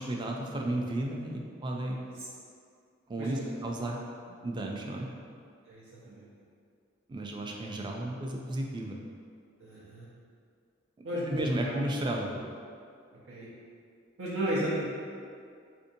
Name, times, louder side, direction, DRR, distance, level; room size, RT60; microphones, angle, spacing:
voice 1, 0.0-2.0 3.1-4.0 4.4-5.1 7.1-9.0 11.3-12.3, right 1 dB, 25° right, 0 dB, 0.3 m, -33 dB
voice 2, 3.2-3.5 5.7-6.3 9.6-10.1 11.0-11.7 12.3-12.4 13.3-13.5 14.2-14.9, right 1 dB, 80° right, -7 dB, 0.7 m, -34 dB
4.3 x 2.7 x 2.6 m, 2.3 s
head